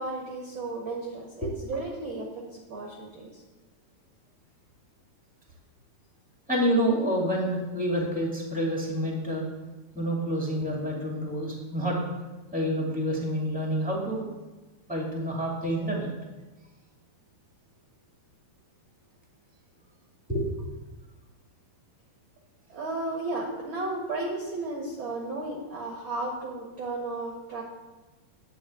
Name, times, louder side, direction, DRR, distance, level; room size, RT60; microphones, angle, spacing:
voice 1, 0.0-3.4 22.7-27.6, right 2 dB, 50° right, -1 dB, 1.5 m, -34 dB
voice 2, 6.5-9.5 9.9-12.0 12.5-14.2 14.9-16.1 20.3-20.6, equal, 5° right, -2 dB, 1.5 m, -28 dB
11.0 x 5.3 x 8.4 m, 1.2 s
omnidirectional pair, 4.5 m